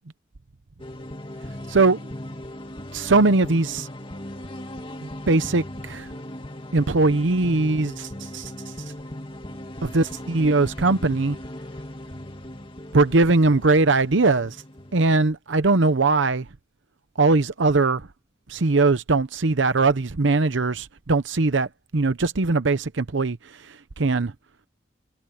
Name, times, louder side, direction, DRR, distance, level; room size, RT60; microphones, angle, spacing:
sound 1, 0.8-15.2, left 1 dB, 25° left, 2.4 m, -38 dB
voice 1, 1.7-2.0 2.9-3.9 5.3-6.1 6.7-8.5 9.8-11.4 12.9-14.6 14.9-16.5 17.2-18.1 18.5-21.7 21.9-23.4 24.0-24.3, right 3 dB, 85° right, 0.8 m, -20 dB
head